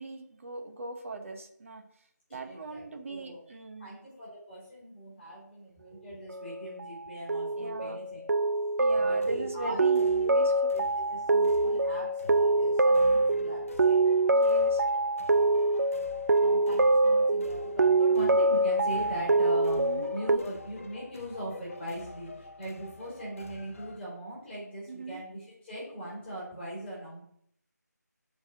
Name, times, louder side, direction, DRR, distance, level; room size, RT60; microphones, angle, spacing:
voice 1, 0.0-1.8 2.3-3.9 7.6-8.0 8.8-10.5 14.3-14.8 19.8-20.1 24.9-25.2, right 2 dB, 45° right, 4 dB, 0.9 m, -39 dB
voice 2, 2.3-3.4 3.8-8.2 8.9-10.0 10.3-10.4 10.7-10.8 11.1-14.0 16.4-27.2, equal, 5° left, -10 dB, 3.2 m, -40 dB
sound 1, 6.3-6.9 7.3-20.4, right 2 dB, 70° right, 0.4 m, -25 dB
sound 2, 8.9-24.0, left 3 dB, 45° left, 0.5 m, -48 dB
6.1 x 4.1 x 6.3 m, 0.67 s
figure-of-eight pair, 165°, 10 cm